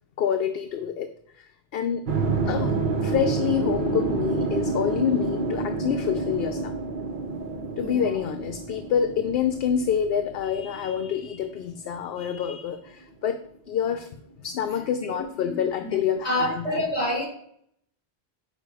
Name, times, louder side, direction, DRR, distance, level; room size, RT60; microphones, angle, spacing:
voice 1, 0.2-2.1 2.5-6.8 7.8-13.4 13.7-14.1 14.4-16.8, left 8 dB, 70° left, 0.8 m, -27 dB
sound 1, 2.1-12.2, right 3 dB, 55° right, 0.9 m, -29 dB
voice 2, 7.8-8.2 15.1-15.9 16.2-17.3, left 1 dB, 40° left, 2.3 m, -28 dB
6.5 x 5.1 x 4.7 m
omnidirectional pair, 1.1 m